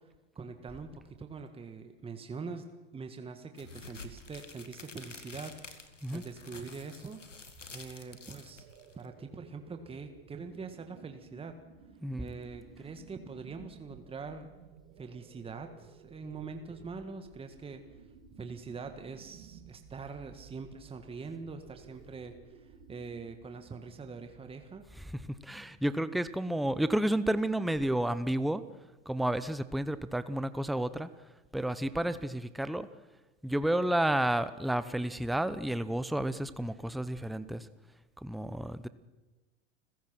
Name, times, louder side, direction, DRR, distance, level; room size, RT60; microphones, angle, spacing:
voice 1, 0.3-2.7 2.9-7.2 7.7-8.6 8.9-11.6 12.2-14.5 15.0-17.8 18.4-24.8, right 4 dB, 15° right, 6 dB, 1.7 m, -43 dB
sound 1, 3.6-9.1, left 3 dB, 90° left, 1.9 m, -49 dB
sound 2, 7.9-25.4, right 7 dB, 50° right, 3.2 m, -56 dB
voice 2, 12.0-12.3 25.0-28.6 29.1-31.1 31.5-32.9 33.4-37.7 38.2-38.9, right 1 dB, ahead, 13 dB, 0.8 m, -31 dB
30.0 x 16.0 x 6.1 m, 1.1 s
figure-of-eight pair, 85°, 36 cm